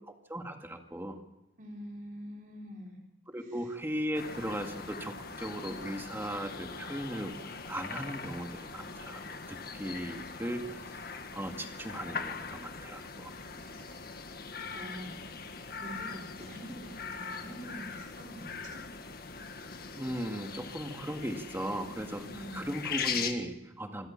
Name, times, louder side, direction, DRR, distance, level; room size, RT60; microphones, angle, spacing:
voice 1, 0.3-1.2 3.3-13.3 19.9-24.1, equal, 15° right, 4 dB, 2.0 m, -38 dB
voice 2, 1.6-3.0 3.5-3.6 13.6-14.0 14.6-15.2 15.8-18.8 22.1-22.7, equal, 45° right, -1 dB, 3.8 m, -45 dB
sound 1, 4.1-23.3, left 5 dB, 55° left, 1.8 m, -41 dB
26.5 x 13.5 x 7.3 m, 0.90 s
head